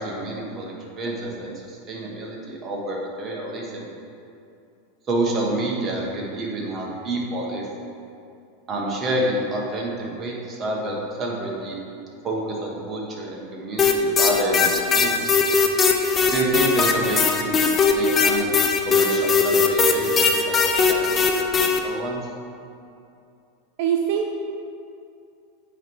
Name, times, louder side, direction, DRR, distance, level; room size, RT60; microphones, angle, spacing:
voice 1, 0.0-3.9 5.1-7.7 8.7-11.8 12.2-15.2 16.3-18.5 18.8-20.6 20.9-22.2, right 2 dB, 25° right, -2 dB, 1.2 m, -28 dB
sound 1, 13.8-21.8, left 5 dB, 25° left, 0.5 m, -19 dB
voice 2, 23.8-24.4, right 8 dB, 60° right, 2 dB, 0.4 m, -22 dB
8.7 x 3.2 x 4.6 m, 2.6 s
supercardioid pair, 130°, 0 cm